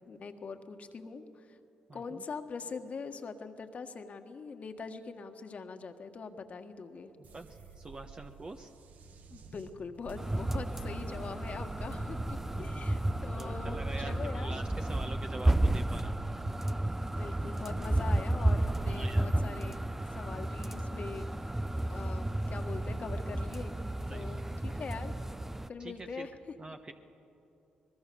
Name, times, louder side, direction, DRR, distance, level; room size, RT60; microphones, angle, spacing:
voice 1, 0.1-1.6 1.9-7.1 9.3-14.6 17.0-21.6 21.9-23.8 24.1-25.1 25.7-26.3, left 4 dB, 50° left, 7 dB, 1.7 m, -43 dB
voice 2, 1.9-2.2 7.2-7.5 7.8-8.7 12.7-12.8 13.4-16.2 18.9-19.3 24.1-24.3 25.8-26.3 26.6-26.9, right 2 dB, 35° right, 5 dB, 1.2 m, -45 dB
sound 1, 7.2-21.4, right 5 dB, 65° right, 1.2 m, -49 dB
sound 2, 10.2-25.7, right 1 dB, 10° right, 0.7 m, -32 dB
23.0 x 20.5 x 7.1 m, 2.8 s
supercardioid pair, 55°, 3 cm